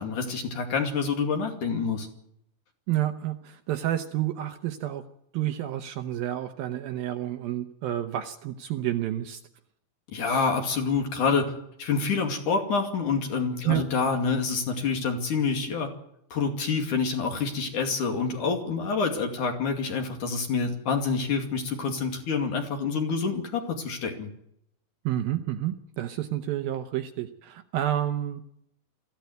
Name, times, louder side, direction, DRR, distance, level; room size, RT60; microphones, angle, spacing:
voice 1, 0.0-2.1 10.1-11.5 11.8-15.9 16.3-24.3, left 5 dB, 50° left, 4 dB, 3.6 m, -27 dB
voice 2, 2.9-5.0 5.3-9.4 13.6-13.8 25.1-28.4, right 12 dB, 70° right, 7 dB, 2.4 m, -29 dB
21.5 x 15.0 x 9.4 m, 0.75 s
omnidirectional pair, 4.9 m